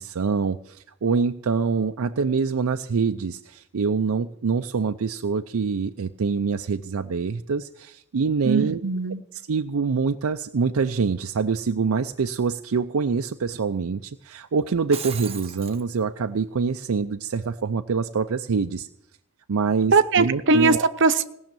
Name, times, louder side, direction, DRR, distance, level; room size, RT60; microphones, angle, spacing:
voice 1, 0.0-8.8 9.5-18.9 19.5-20.9, right 5 dB, 75° right, 6 dB, 0.5 m, -25 dB
voice 2, 8.4-9.2 19.9-20.7 21.0-21.2, right 4 dB, 55° right, 9 dB, 0.8 m, -20 dB
Shatter, 14.7-15.8, right 8 dB, 25° right, 1.0 m, -36 dB
18.0 x 6.4 x 9.0 m, 0.78 s
head